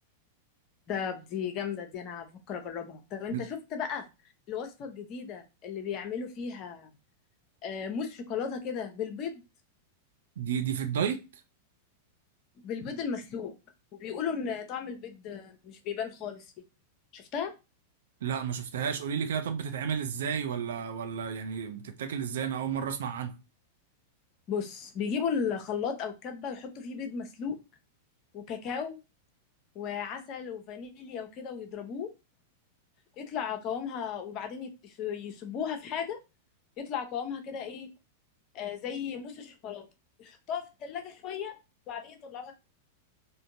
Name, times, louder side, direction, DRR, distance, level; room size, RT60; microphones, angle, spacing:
voice 1, 0.9-4.0 4.5-6.9 7.6-9.4 12.6-13.6 14.0-16.4 17.1-17.5 24.5-27.6 28.3-29.0 29.7-32.1 33.2-36.2 36.8-37.9 38.5-39.9 40.2-41.6 41.9-42.5, left 7 dB, 40° left, 0.7 m, -35 dB
voice 2, 10.4-11.2 18.2-23.3, right 7 dB, 65° right, 0.5 m, -32 dB
3.6 x 2.6 x 2.6 m
figure-of-eight pair, 95°, 0 cm